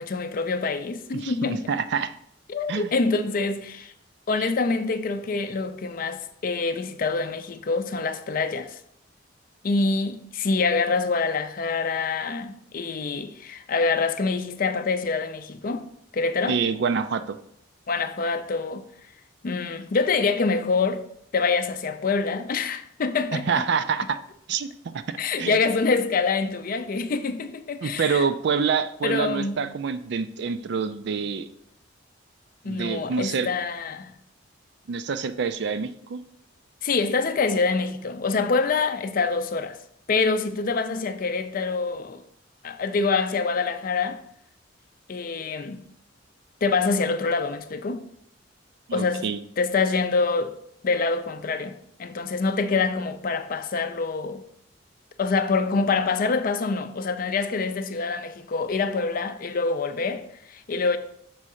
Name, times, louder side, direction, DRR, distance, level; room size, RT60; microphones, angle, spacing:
voice 1, 0.0-1.6 2.5-3.9 4.3-8.8 9.6-15.9 16.1-16.6 17.9-18.9 19.4-21.0 21.3-23.6 25.2-28.2 29.0-29.6 32.6-34.1 36.8-39.8 40.1-42.2 42.6-44.2 45.1-45.8 46.6-48.1 48.9-49.3 49.6-50.6 50.8-54.4 55.2-61.0, left 4 dB, 45° left, 0.4 m, -25 dB
voice 2, 1.1-2.2 2.7-2.9 16.5-17.4 23.3-24.2 24.5-25.6 27.8-31.5 32.7-33.5 34.9-36.2 48.9-49.4, right 6 dB, 60° right, 0.4 m, -27 dB
6.2 x 3.6 x 4.3 m
head